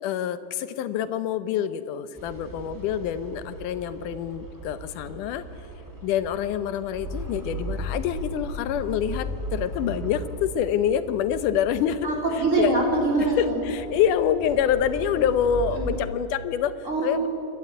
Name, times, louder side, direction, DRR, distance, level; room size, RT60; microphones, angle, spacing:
voice 1, 0.0-5.4 6.0-12.1 12.6-12.7 13.4-16.8 17.0-17.3, left 9 dB, 75° left, 13 dB, 2.3 m, -26 dB
sound 1, 2.2-16.1, equal, 5° right, 2.3 m, -37 dB
voice 2, 12.0-13.6 15.8-15.9 16.8-17.3, right 2 dB, 20° right, -1 dB, 4.1 m, -24 dB
27.5 x 13.0 x 9.0 m, 2.9 s
omnidirectional pair, 3.8 m